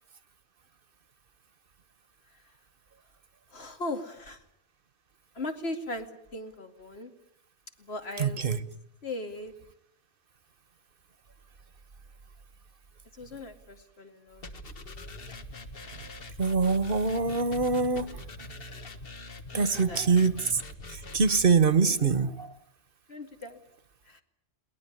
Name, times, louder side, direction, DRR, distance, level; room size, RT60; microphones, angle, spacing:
voice 1, 3.5-4.4 5.3-7.1 7.8-8.6 9.0-9.5 13.1-14.5 19.5-20.1 21.8-22.1 23.1-23.6 24.1-24.2, left 2 dB, 80° left, 5 dB, 2.6 m, -38 dB
voice 2, 8.2-8.6 16.4-18.2 19.5-20.6 20.9-22.5, right 4 dB, 60° right, 15 dB, 1.3 m, -24 dB
sound 1, 14.4-21.5, left 2 dB, 65° left, 1.6 m, -43 dB
22.0 x 18.5 x 9.9 m, 0.74 s
omnidirectional pair, 1.1 m